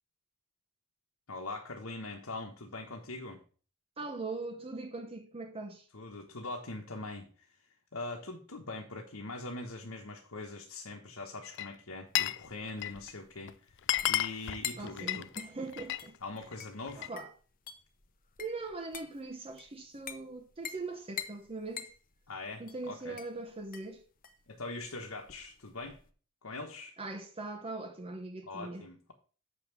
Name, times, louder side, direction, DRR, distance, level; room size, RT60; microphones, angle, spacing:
voice 1, 1.3-3.4 5.9-7.3 7.9-13.7 14.1-15.3 16.2-17.1 22.3-23.2 24.5-26.0 26.4-26.9 28.5-29.1, left 2 dB, 75° left, 1.2 m, -42 dB
voice 2, 4.0-5.9 14.8-16.2 17.0-17.3 18.4-21.9 22.6-24.0 27.0-28.9, right 3 dB, 25° right, 1.0 m, -41 dB
Glass, 11.4-12.4 12.7-13.1 13.5-13.6 13.8-16.1 16.4-17.2, left 13 dB, 55° left, 0.4 m, -33 dB
sound 1, 12.3-26.1, left 8 dB, 40° left, 0.8 m, -47 dB
7.3 x 5.5 x 6.0 m
head